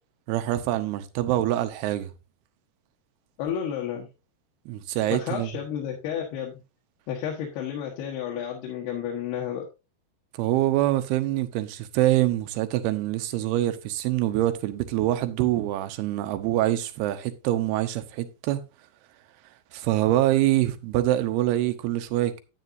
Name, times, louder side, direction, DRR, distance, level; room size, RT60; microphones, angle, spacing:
voice 1, 0.3-2.1 4.7-5.5 10.4-18.6 19.7-22.4, right 14 dB, 80° right, 2.7 m, -25 dB
voice 2, 3.4-4.1 5.1-6.6 7.1-9.7, left 9 dB, 75° left, 3.3 m, -31 dB
10.0 x 9.4 x 2.6 m
omnidirectional pair, 4.8 m